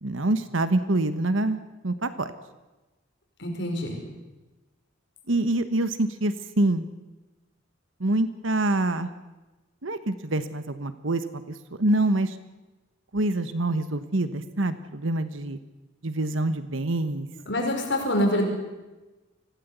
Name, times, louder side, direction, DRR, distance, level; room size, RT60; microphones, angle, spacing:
voice 1, 0.0-2.3 5.3-6.9 8.0-9.1 9.8-12.4 13.1-15.6 16.0-17.3, right 2 dB, 75° right, 11 dB, 1.3 m, -26 dB
voice 2, 3.4-4.0 17.5-18.5, left 1 dB, 60° left, 1 dB, 5.4 m, -25 dB
25.0 x 17.0 x 8.3 m, 1.1 s
head